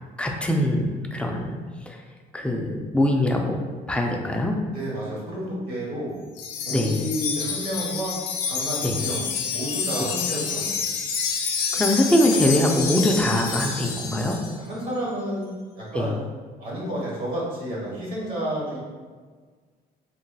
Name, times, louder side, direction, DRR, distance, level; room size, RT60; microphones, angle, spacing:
voice 1, 0.2-1.6 1.9-2.0 2.3-3.6 3.9-4.6 6.7-7.0 8.8-9.0 11.7-14.4 15.9-16.1, left 1 dB, 5° left, 1 dB, 0.3 m, -22 dB
voice 2, 4.7-6.1 6.6-8.1 8.5-9.2 9.5-10.9 14.6-15.5 15.7-16.2 16.6-18.8, equal, 60° right, -6 dB, 1.2 m, -30 dB
Wind chime, 6.4-14.6, left 6 dB, 90° left, 0.5 m, -28 dB
2.9 x 2.7 x 2.3 m, 1.5 s
cardioid pair, 110°, 17 cm